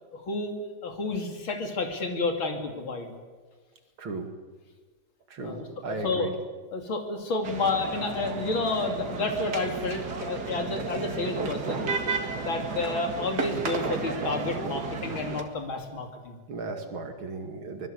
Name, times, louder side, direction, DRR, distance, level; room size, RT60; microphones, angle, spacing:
voice 1, 0.1-0.5 0.8-3.1 5.4-6.3 6.7-11.9 12.4-16.4, left 3 dB, 80° left, 4 dB, 3.6 m, -30 dB
voice 2, 4.0-4.3 5.3-6.3 16.5-17.9, right 3 dB, 85° right, 6 dB, 3.1 m, -35 dB
sound 1, 7.4-15.4, right 4 dB, 55° right, 2.4 m, -33 dB
24.0 x 20.5 x 8.1 m, 1.4 s
omnidirectional pair, 2.2 m